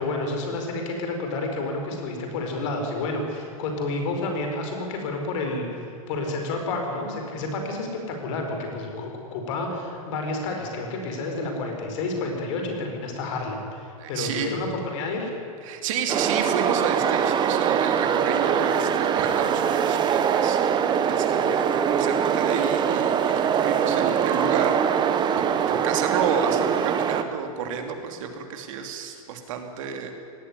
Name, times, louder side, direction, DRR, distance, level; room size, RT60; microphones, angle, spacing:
voice 1, 0.0-5.6 6.1-15.3, left 2 dB, 55° left, 3 dB, 5.2 m, -30 dB
voice 2, 14.0-14.6 15.6-30.1, right 7 dB, 60° right, 5 dB, 2.9 m, -30 dB
sound 1, 16.1-27.2, right 8 dB, 25° right, 1.1 m, -23 dB
18.5 x 14.5 x 10.0 m, 2.6 s
hypercardioid pair, 130°, 19 cm